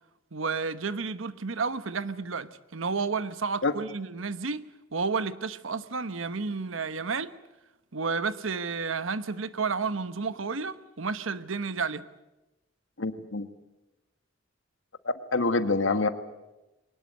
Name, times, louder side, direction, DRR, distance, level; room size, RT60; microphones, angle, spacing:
voice 1, 0.3-4.6 4.9-7.3 7.9-12.0, right 4 dB, 85° right, 1.0 m, -31 dB
voice 2, 13.0-13.5 15.0-16.1, left 3 dB, 75° left, 1.6 m, -26 dB
22.5 x 19.5 x 9.4 m
head